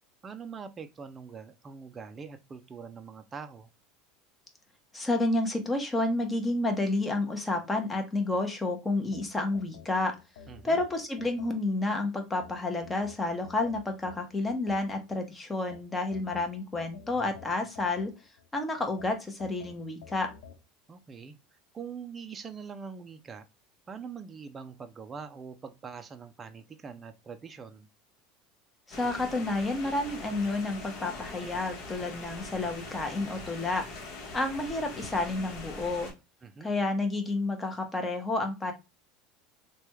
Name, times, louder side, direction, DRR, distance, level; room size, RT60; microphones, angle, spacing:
voice 1, 0.2-3.7 10.5-10.8 20.9-23.5 23.9-27.9 36.4-36.7, right 6 dB, 25° right, 0.3 m, -43 dB
voice 2, 4.9-10.1 10.6-18.1 18.5-20.3 28.9-33.8 34.3-36.1 36.6-38.7, left 2 dB, 15° left, 0.8 m, -30 dB
sound 1, 9.1-11.9 12.4-15.2 15.7-18.5 19.0-20.6, left 7 dB, 90° left, 0.4 m, -51 dB
sound 2, 28.9-36.1, left 3 dB, 60° left, 1.0 m, -42 dB
3.2 x 2.2 x 2.9 m
supercardioid pair, 125°, 0 cm